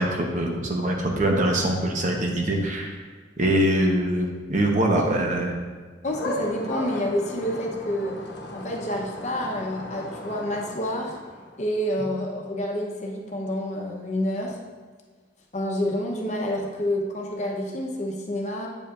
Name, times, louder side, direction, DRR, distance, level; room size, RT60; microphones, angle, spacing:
voice 1, 0.0-3.0 3.4-5.5, right 1 dB, 45° right, 1 dB, 0.8 m, -23 dB
sound 1, 6.0-11.8, left 1 dB, 75° left, 1.0 m, -36 dB
voice 2, 6.0-8.1 8.5-11.2 11.6-14.6 15.5-18.7, left 1 dB, 40° left, 0 dB, 0.8 m, -28 dB
8.5 x 5.5 x 2.5 m, 1.5 s
head